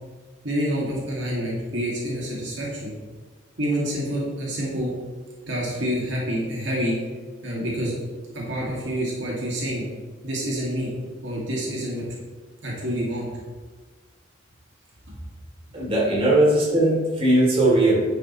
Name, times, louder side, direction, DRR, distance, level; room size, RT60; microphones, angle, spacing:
voice 1, 0.4-2.9 3.6-4.9 5.5-7.0 7.4-8.0 8.3-9.9 10.2-10.9 11.2-12.0 12.6-13.3 15.1-15.2, equal, 75° right, -4 dB, 2.2 m, -27 dB
voice 2, 15.7-18.0, right 1 dB, 30° right, -5 dB, 3.0 m, -19 dB
10.0 x 7.7 x 3.1 m, 1.4 s
head